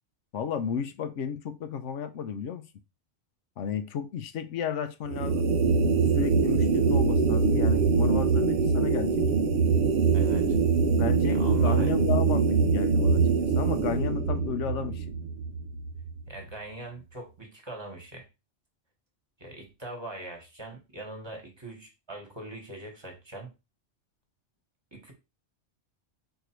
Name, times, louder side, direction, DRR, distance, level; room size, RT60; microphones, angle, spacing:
voice 1, 0.3-2.7 3.6-5.5 6.1-9.2 11.0-15.2, left 7 dB, 90° left, 1.0 m, -33 dB
sound 1, 5.1-16.4, right 5 dB, 65° right, 0.7 m, -24 dB
voice 2, 10.1-10.6 11.2-11.9 16.3-18.3 19.4-23.5 24.9-25.1, right 2 dB, 25° right, 1.3 m, -42 dB
4.5 x 2.7 x 4.4 m
omnidirectional pair, 1.2 m